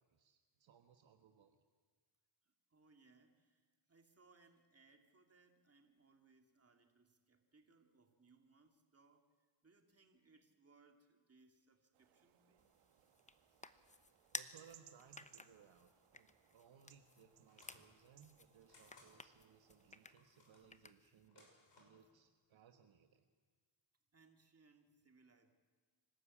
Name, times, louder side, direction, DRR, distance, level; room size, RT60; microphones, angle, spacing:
voice 1, 0.0-1.6 14.3-21.5 21.8-23.3, right 7 dB, 65° right, 6 dB, 1.5 m, -65 dB
voice 2, 2.7-9.3 9.6-12.7 13.5-13.6 24.1-25.5, right 3 dB, 30° right, 4 dB, 2.7 m, -70 dB
sound 1, 11.9-20.1, right 11 dB, 90° right, 1.4 m, -68 dB
sound 2, 12.6-21.3, left 3 dB, 15° left, 0.9 m, -55 dB
sound 3, 17.5-17.9 18.7-19.1 20.1-20.7 21.2-22.0, left 2 dB, 55° left, 6.3 m, -66 dB
26.5 x 12.5 x 8.6 m, 1.5 s
cardioid pair, 80°, 49 cm